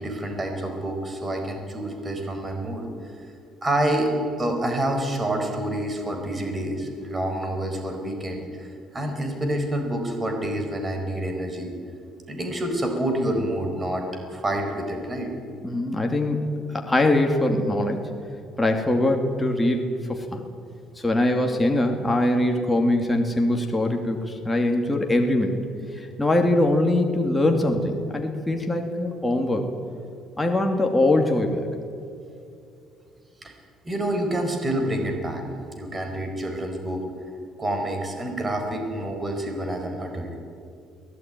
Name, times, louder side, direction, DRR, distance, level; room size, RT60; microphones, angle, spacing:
voice 1, 0.0-2.9 3.6-4.1 4.4-11.7 12.3-15.3 33.4-33.5 33.8-35.5 35.7-37.0 37.6-40.4, right 1 dB, 20° right, 4 dB, 4.6 m, -28 dB
voice 2, 15.6-16.4 16.7-18.0 18.6-20.4 21.0-25.6 25.9-29.7 30.4-31.7, left 1 dB, 10° left, 2 dB, 2.4 m, -22 dB
23.5 x 18.0 x 9.1 m, 2.5 s
cardioid pair, 130°, 0 cm